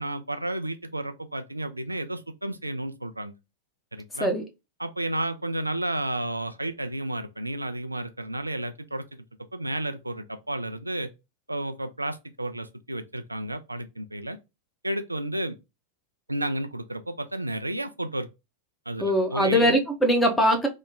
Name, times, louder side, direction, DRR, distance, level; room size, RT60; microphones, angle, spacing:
voice 1, 0.0-3.3 3.9-4.3 4.8-9.0 9.5-11.1 11.5-14.4 14.8-15.6 16.3-18.3 18.9-19.7, right 1 dB, 85° right, 0.3 m, -32 dB
voice 2, 19.0-20.7, equal, 10° left, 0.8 m, -21 dB
3.1 x 2.1 x 3.7 m
figure-of-eight pair, 90°, 0 cm